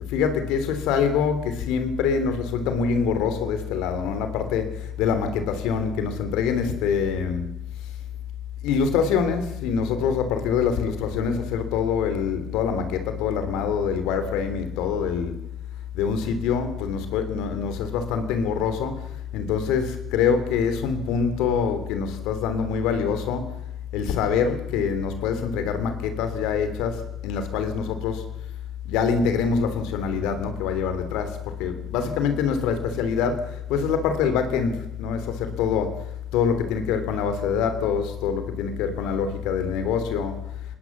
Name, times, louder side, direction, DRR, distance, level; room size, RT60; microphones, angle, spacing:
voice 1, 0.1-7.4 8.6-15.4 15.9-23.5 23.9-28.3 28.8-36.1 36.3-40.4, left 6 dB, 80° left, 9 dB, 3.2 m, -25 dB
21.0 x 19.0 x 7.3 m, 0.83 s
supercardioid pair, 70°, 0 cm